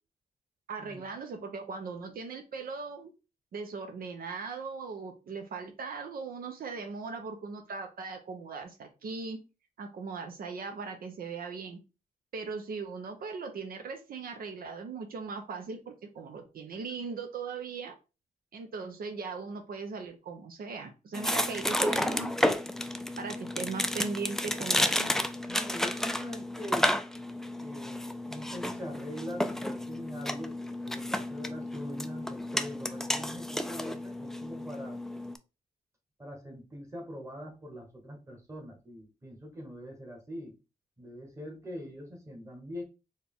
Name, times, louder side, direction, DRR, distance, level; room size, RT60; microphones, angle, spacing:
voice 1, 0.7-3.1 3.5-9.4 9.8-11.8 12.3-18.0 18.5-22.6 23.2-25.1, right 4 dB, 80° right, 5 dB, 0.7 m, -39 dB
sound 1, 21.1-35.4, left 1 dB, 5° left, 0.3 m, -32 dB
voice 2, 25.5-27.0 27.6-28.0 28.3-35.0 36.2-40.5 41.0-42.8, equal, 20° right, 2 dB, 1.3 m, -43 dB
4.3 x 2.3 x 3.5 m, 0.29 s
wide cardioid pair, 120°, 15 cm